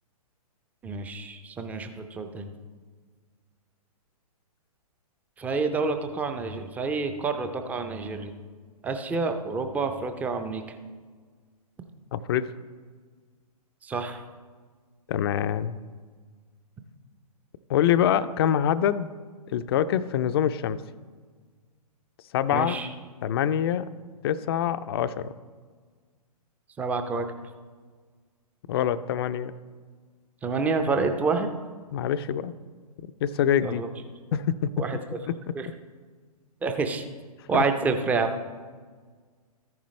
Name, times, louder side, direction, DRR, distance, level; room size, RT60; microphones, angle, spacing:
voice 1, 0.8-2.5 5.4-8.3 8.8-10.6 13.8-14.2 22.5-22.9 26.8-27.3 30.4-31.5 33.6-33.9 34.8-35.0 35.6-35.7 36.6-37.0 37.5-38.3, right 4 dB, 10° right, 7 dB, 0.5 m, -28 dB
voice 2, 12.1-12.5 15.1-15.8 17.7-19.1 19.5-20.8 22.3-22.8 23.2-23.9 24.2-25.3 28.7-29.5 31.9-32.5 33.2-33.8 34.3-34.7 35.3-35.5 37.5-37.7, left 9 dB, 40° left, 13 dB, 0.5 m, -25 dB
13.5 x 10.5 x 3.2 m, 1.5 s
figure-of-eight pair, 130°, 20 cm